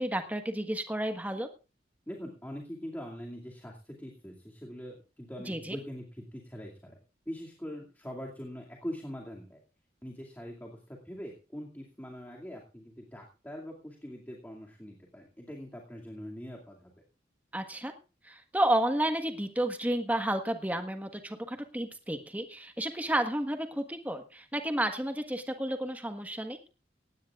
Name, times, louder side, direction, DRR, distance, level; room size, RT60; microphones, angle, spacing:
voice 1, 0.0-1.5 5.5-5.8 17.5-17.9 18.2-26.6, right 1 dB, 10° right, 7 dB, 1.4 m, -31 dB
voice 2, 2.1-7.0 7.3-9.6 10.0-16.9, equal, 10° left, -1 dB, 2.4 m, -43 dB
18.0 x 16.5 x 2.5 m, 0.34 s
head